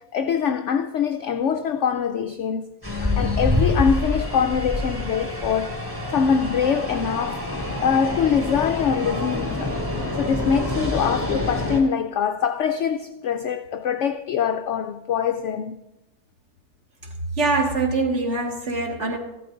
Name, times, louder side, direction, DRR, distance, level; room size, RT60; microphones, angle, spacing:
voice 1, 0.1-2.6 3.0-5.8 6.1-7.5 7.8-9.7 10.2-15.8, left 7 dB, 70° left, 0.7 m, -23 dB
sound 1, 2.8-11.8, left 2 dB, 10° right, 2.3 m, -26 dB
voice 2, 17.4-19.2, right 3 dB, 45° right, 1.8 m, -23 dB
15.0 x 12.0 x 3.8 m
omnidirectional pair, 1.7 m